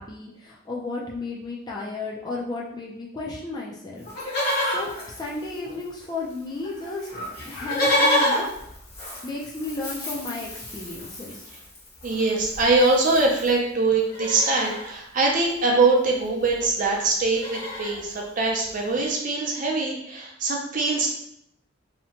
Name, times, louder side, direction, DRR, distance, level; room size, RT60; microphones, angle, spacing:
voice 1, 0.0-4.1 4.7-4.9 5.2-7.1 7.4-8.8 9.2-11.5, left 2 dB, 20° left, -3 dB, 0.4 m, -33 dB
Livestock farm animals working animals, 4.0-6.0 6.3-6.4 6.6-13.6 14.0-14.9 16.1-16.2 16.4-16.7 17.0-18.0 18.6-18.7, left 1 dB, 50° left, 1.0 m, -29 dB
voice 2, 12.0-21.1, right 3 dB, 40° right, 0 dB, 0.5 m, -23 dB
2.8 x 2.1 x 2.8 m, 0.76 s
head